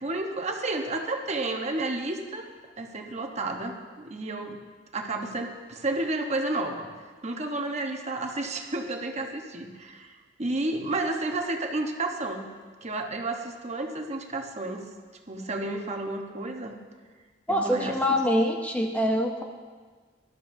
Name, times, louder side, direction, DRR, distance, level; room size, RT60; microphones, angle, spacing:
voice 1, 0.0-2.5 2.8-4.6 4.9-6.9 7.2-12.4 12.8-14.8 15.3-16.7 17.5-18.2, right 2 dB, 35° right, 3 dB, 1.1 m, -31 dB
voice 2, 17.5-19.4, equal, 10° left, 2 dB, 0.6 m, -25 dB
19.5 x 12.5 x 2.7 m, 1.5 s
head